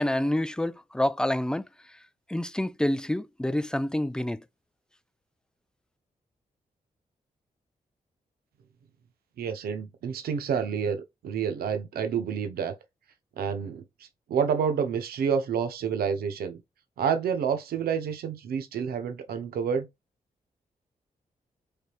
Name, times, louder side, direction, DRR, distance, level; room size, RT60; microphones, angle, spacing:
voice 1, 0.0-1.7 2.3-4.4, left 1 dB, 5° left, 0.3 m, -27 dB
voice 2, 9.4-12.7 13.4-13.8 14.3-16.6 17.0-19.9, right 7 dB, 80° right, 0.5 m, -28 dB
3.3 x 2.7 x 2.4 m
supercardioid pair, 45°, 16 cm